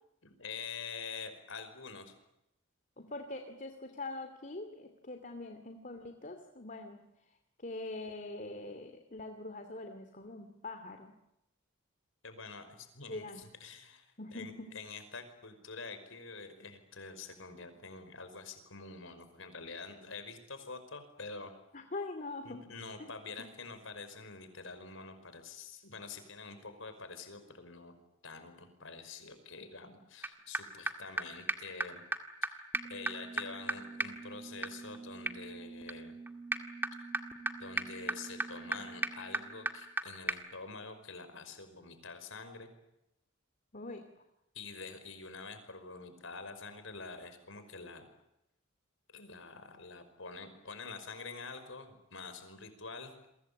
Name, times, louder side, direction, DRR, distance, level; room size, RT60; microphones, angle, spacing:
voice 1, 0.2-2.1 12.2-21.5 22.5-27.9 28.2-32.0 32.4-32.6 32.9-36.2 37.6-42.7 44.5-48.0 49.1-53.3, left 4 dB, 75° left, 9 dB, 5.3 m, -46 dB
voice 2, 3.0-7.0 7.6-11.1 13.1-13.5 14.2-14.7 21.7-22.6 23.0-23.1 23.4-23.5 43.7-44.0, left 2 dB, 40° left, 7 dB, 2.6 m, -43 dB
sound 1, 30.2-30.3 30.5-30.6 30.9-31.0 31.2-31.3 31.5-31.6 31.8-31.9 32.1-32.2 32.4-32.5 32.7-40.0 40.3-40.4, right 2 dB, 10° right, 2.0 m, -37 dB
29.5 x 23.5 x 8.6 m, 0.87 s
head